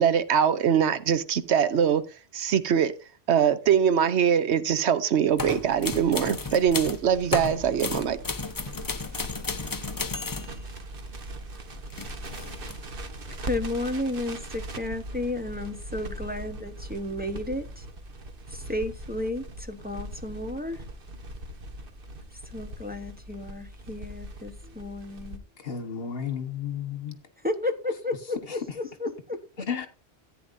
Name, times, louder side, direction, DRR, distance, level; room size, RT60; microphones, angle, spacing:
voice 1, 0.0-2.0 2.3-2.9 3.3-8.2, right 8 dB, 80° right, 1.0 m, -23 dB
sound 1, 5.4-7.0 7.3-10.5 11.7-12.8, left 4 dB, 25° left, 0.4 m, -33 dB
Crackle, 5.5-25.4, right 1 dB, 55° right, 1.2 m, -40 dB
voice 2, 13.3-17.8 18.5-20.8 22.3-25.4 27.4-29.4, left 1 dB, 10° right, 0.9 m, -33 dB
voice 3, 25.6-27.2 28.5-28.6 29.7-29.9, left 7 dB, 60° left, 1.5 m, -32 dB
14.5 x 9.3 x 2.6 m
omnidirectional pair, 1.1 m